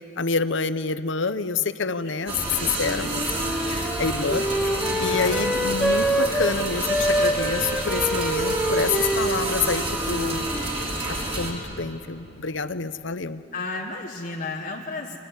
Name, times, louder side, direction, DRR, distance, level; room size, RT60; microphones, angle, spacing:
voice 1, 0.2-2.4 2.8-3.2 3.7-10.5 11.0-13.4, left 4 dB, 75° left, 13 dB, 0.8 m, -28 dB
voice 2, 2.0-2.7 3.6-4.0 4.8-5.5 13.5-15.2, left 3 dB, 45° left, -1 dB, 1.4 m, -34 dB
sound 1, 2.3-11.5, right 2 dB, 35° right, 4.6 m, -29 dB
Wind instrument woodwind instrument, 2.8-6.6 6.8-11.0, equal, ahead, 1.8 m, -26 dB
29.5 x 23.5 x 8.2 m, 3.0 s
head